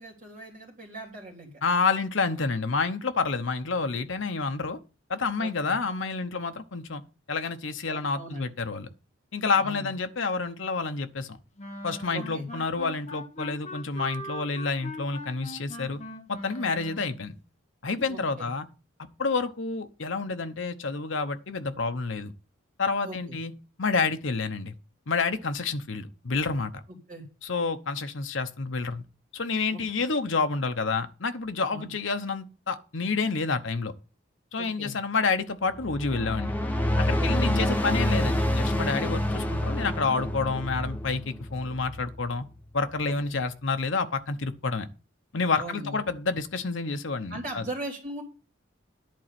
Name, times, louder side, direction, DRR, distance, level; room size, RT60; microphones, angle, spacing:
voice 1, 0.0-1.5 5.4-5.7 7.9-8.5 9.5-9.9 12.1-12.5 18.1-18.5 23.0-23.4 27.1-27.2 29.7-29.8 31.7-31.9 34.6-35.0 37.2-37.5 43.0-43.3 45.6-46.0 47.3-48.2, right 1 dB, 40° right, 3.1 m, -39 dB
voice 2, 1.6-4.8 5.1-7.0 7.3-8.9 9.3-11.4 11.8-16.0 16.3-17.4 17.8-18.7 19.2-22.3 22.8-23.5 23.8-24.7 25.1-26.8 27.4-29.0 29.3-33.9 34.5-36.5 37.0-42.4 42.7-44.9 45.3-47.7, left 4 dB, 65° left, 0.9 m, -29 dB
sound 1, 11.6-17.2, equal, 35° left, 1.3 m, -41 dB
sound 2, 35.7-42.4, left 1 dB, 10° left, 0.7 m, -27 dB
10.5 x 4.2 x 7.5 m
head